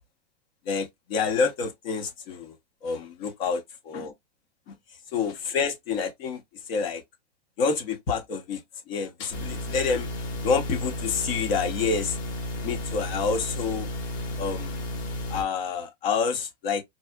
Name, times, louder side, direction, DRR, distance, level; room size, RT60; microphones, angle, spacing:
voice 1, 0.6-2.5 2.8-4.1 4.7-4.8 5.1-6.4 6.7-7.0 7.6-8.6 8.9-10.1 10.4-12.2 12.6-13.9 14.4-14.9 15.3-16.8, left 5 dB, 50° left, 1.1 m, -28 dB
sound 1, 9.3-15.4, left 1 dB, 75° left, 2.0 m, -33 dB
4.1 x 2.3 x 2.3 m
hypercardioid pair, 140°, 37 cm